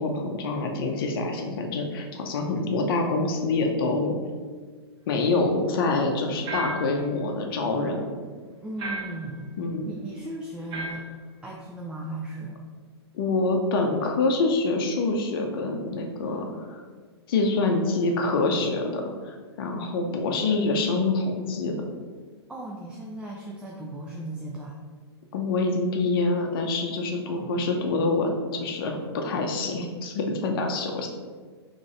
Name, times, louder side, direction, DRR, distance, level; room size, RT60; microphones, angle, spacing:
voice 1, 0.0-4.1 5.1-8.2 9.6-9.9 13.1-16.8 17.3-21.7 25.3-31.1, left 3 dB, 55° left, 3 dB, 0.6 m, -26 dB
sound 1, 6.5-7.0 8.8-9.3 10.7-11.1, right 2 dB, 30° right, 1.1 m, -34 dB
voice 2, 8.6-9.6 9.9-11.1 11.4-12.6 16.2-16.6 22.5-24.8 27.3-27.6, right 1 dB, 5° right, -2 dB, 0.4 m, -37 dB
3.8 x 3.1 x 3.8 m, 1.5 s
hypercardioid pair, 120°, 14 cm